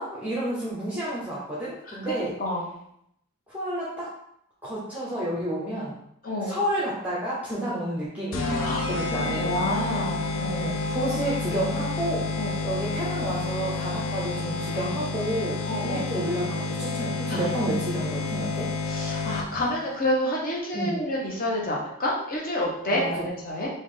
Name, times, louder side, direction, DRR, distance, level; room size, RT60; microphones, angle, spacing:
voice 1, 0.0-2.3 3.5-4.1 4.6-5.9 6.4-9.5 10.5-12.3 12.6-18.7 20.7-21.0 22.9-23.3, right 1 dB, 5° right, -7 dB, 0.8 m, -30 dB
voice 2, 6.2-6.5 8.6-8.8 9.1-10.7 12.4-12.5 15.7-16.2 17.3-17.4 18.9-23.7, left 1 dB, 40° left, -3 dB, 1.1 m, -29 dB
sound 1, 8.3-19.7, left 3 dB, 60° left, 0.6 m, -29 dB
4.6 x 2.6 x 3.8 m, 0.74 s
head